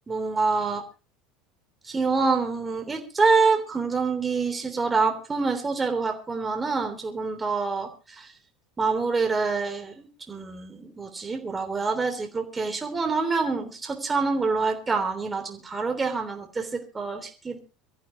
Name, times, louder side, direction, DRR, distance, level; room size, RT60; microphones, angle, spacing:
voice 1, 0.1-0.8 1.9-7.9 8.2-8.3 8.8-17.6, right 4 dB, 20° right, 4 dB, 3.4 m, -26 dB
24.0 x 14.0 x 3.0 m, 0.33 s
figure-of-eight pair, 70°, 0 cm